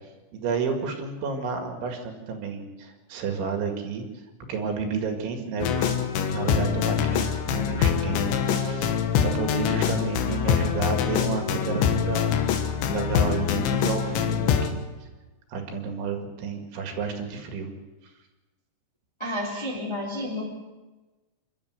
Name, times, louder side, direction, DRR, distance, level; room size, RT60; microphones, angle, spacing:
voice 1, 0.3-4.0 4.5-6.1 6.3-12.4 12.9-14.8 15.5-17.7, right 5 dB, 70° right, 4 dB, 4.3 m, -31 dB
sound 1, 5.6-14.7, left 8 dB, 70° left, 3.5 m, -24 dB
voice 2, 19.2-20.5, left 1 dB, 5° left, -2 dB, 2.4 m, -30 dB
26.5 x 12.5 x 8.1 m, 1.2 s
omnidirectional pair, 5.7 m